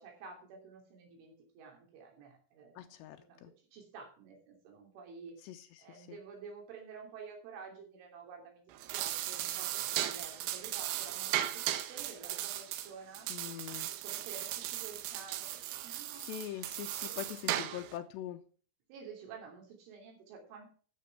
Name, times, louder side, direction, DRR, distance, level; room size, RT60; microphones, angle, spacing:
voice 1, 0.0-3.4 3.7-5.3 5.8-13.3 13.9-16.4 17.0-17.8 18.9-20.7, right 5 dB, 75° right, 1 dB, 5.5 m, -51 dB
voice 2, 2.8-3.5 5.4-6.2 13.3-13.9 15.9-18.4, left 12 dB, 85° left, 7 dB, 2.5 m, -43 dB
sound 1, 8.7-18.0, right 13 dB, 90° right, 3.6 m, -37 dB
12.5 x 6.7 x 5.8 m, 0.43 s
omnidirectional pair, 5.6 m